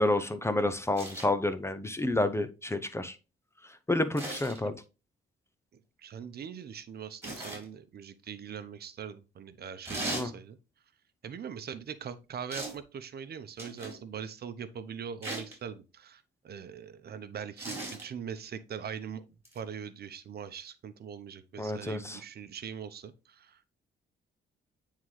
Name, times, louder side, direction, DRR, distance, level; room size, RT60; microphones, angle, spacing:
voice 1, 0.0-3.2 3.9-4.7 10.1-10.3 21.6-22.2, left 2 dB, 15° left, 0.6 m, -29 dB
sound 1, 1.0-1.3 4.2-4.6 7.2-7.6 9.9-10.3 12.5-12.8 13.6-14.0 15.2-15.6 17.6-18.0 19.5-19.6, right 1 dB, 10° right, 3.9 m, -38 dB
voice 2, 6.0-10.6 11.2-19.2 19.5-23.6, right 7 dB, 55° right, 0.8 m, -42 dB
9.2 x 3.7 x 3.2 m
cardioid pair, 90°, 20 cm